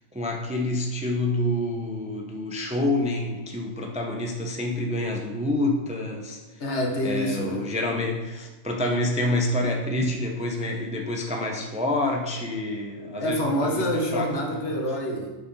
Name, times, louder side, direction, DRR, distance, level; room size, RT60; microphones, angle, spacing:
voice 1, 0.1-6.4 7.0-14.3, left 1 dB, 5° right, 1 dB, 0.6 m, -27 dB
voice 2, 6.6-7.7 13.2-15.4, equal, 60° left, 1 dB, 1.5 m, -27 dB
8.6 x 4.7 x 5.4 m, 1.2 s
omnidirectional pair, 1.4 m